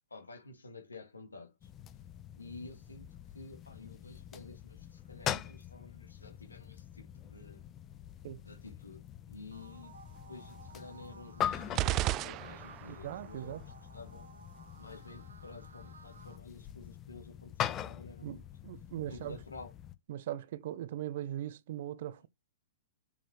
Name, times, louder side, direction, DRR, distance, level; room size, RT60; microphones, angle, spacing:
voice 1, 0.1-1.7 2.3-3.1 3.3-7.6 8.4-9.0 9.3-9.9 10.3-14.3 14.8-18.4 19.1-19.7, left 3 dB, 85° left, 2.0 m, -51 dB
sound 1, 1.6-19.9, left 10 dB, 25° left, 0.8 m, -43 dB
sound 2, 9.5-16.4, right 4 dB, 80° right, 1.8 m, -56 dB
sound 3, 11.7-13.1, right 15 dB, 35° right, 0.4 m, -32 dB
voice 2, 12.9-13.6 18.2-19.4 20.1-22.3, right 12 dB, 55° right, 0.8 m, -40 dB
7.1 x 6.0 x 3.0 m
figure-of-eight pair, 110°, 0 cm